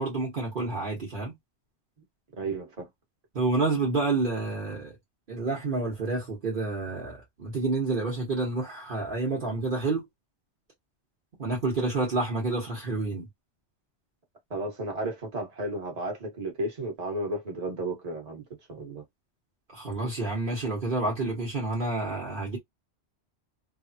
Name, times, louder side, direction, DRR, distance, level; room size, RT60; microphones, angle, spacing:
voice 1, 0.0-1.4 3.3-4.9 5.3-10.0 11.4-13.3 19.7-22.6, right 3 dB, 50° right, 1.3 m, -29 dB
voice 2, 2.4-2.9 14.5-18.4 18.7-19.0, right 1 dB, 35° right, 1.3 m, -33 dB
3.4 x 2.1 x 2.7 m
omnidirectional pair, 1.2 m